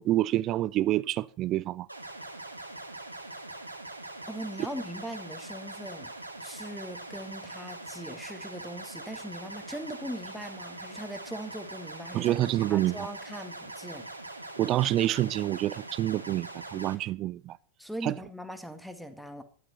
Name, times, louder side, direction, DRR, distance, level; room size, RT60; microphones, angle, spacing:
voice 1, 0.0-1.9 12.1-13.1 14.6-17.6 18.0-18.2, right 14 dB, 35° right, 0.6 m, -27 dB
sound 1, 1.9-16.9, right 2 dB, 85° right, 1.9 m, -42 dB
voice 2, 4.3-6.1 6.4-12.3 12.7-14.1 17.8-19.4, equal, ahead, 1.9 m, -40 dB
12.5 x 11.5 x 5.5 m
figure-of-eight pair, 90°, 0 cm